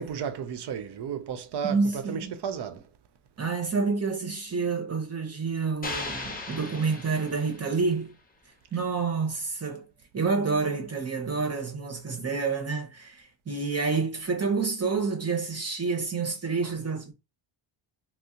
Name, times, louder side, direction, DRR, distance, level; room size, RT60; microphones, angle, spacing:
voice 1, 0.0-1.8 2.1-2.8, right 7 dB, 55° right, 0.7 m, -33 dB
voice 2, 1.6-2.3 3.4-8.1 8.7-9.8 10.1-17.1, right 4 dB, 30° right, 1.1 m, -28 dB
sound 1, 5.8-8.0, left 3 dB, 20° left, 1.0 m, -37 dB
2.7 x 2.1 x 3.7 m
cardioid pair, 85°, 49 cm